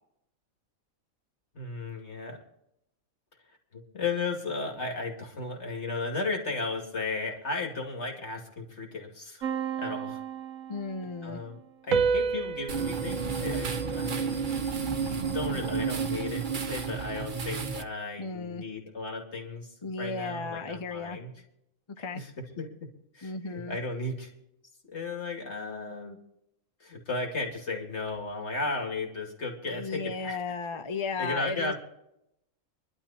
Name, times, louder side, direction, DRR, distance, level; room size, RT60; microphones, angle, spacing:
voice 1, 1.5-2.4 3.7-9.5 9.8-10.2 11.2-14.4 15.3-21.3 22.1-24.3 24.8-26.2 26.8-30.6 31.2-31.7, left 3 dB, 55° left, 1 dB, 2.6 m, -35 dB
sound 1, 9.4-11.2 11.9-14.5, right 6 dB, 75° right, 1.2 m, -31 dB
voice 2, 10.7-11.4 18.2-18.6 19.8-21.2 22.0-22.2 23.2-23.8 29.7-31.7, left 4 dB, 35° left, 8 dB, 0.5 m, -35 dB
sound 2, 12.7-17.8, right 5 dB, 40° right, 1.0 m, -31 dB
25.5 x 11.5 x 2.9 m, 0.82 s
omnidirectional pair, 1.5 m